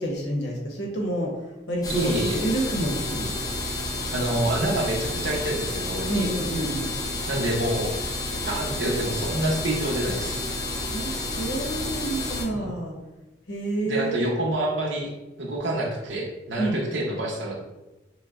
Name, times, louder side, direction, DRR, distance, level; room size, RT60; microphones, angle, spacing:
voice 1, 0.0-1.4 1.7-2.1 2.4-3.3 6.0-6.9 10.9-13.0 13.5-14.3 16.6-16.8, right 1 dB, 70° left, -1 dB, 0.9 m, -28 dB
sound 1, 1.8-12.4, left 2 dB, 20° left, 0.5 m, -30 dB
voice 2, 1.9-2.5 4.1-6.3 7.3-7.9 8.4-10.4 12.5-12.7 13.9-15.1 15.4-17.6, right 1 dB, 80° right, -1 dB, 0.9 m, -27 dB
6.1 x 2.1 x 2.5 m, 1.0 s
head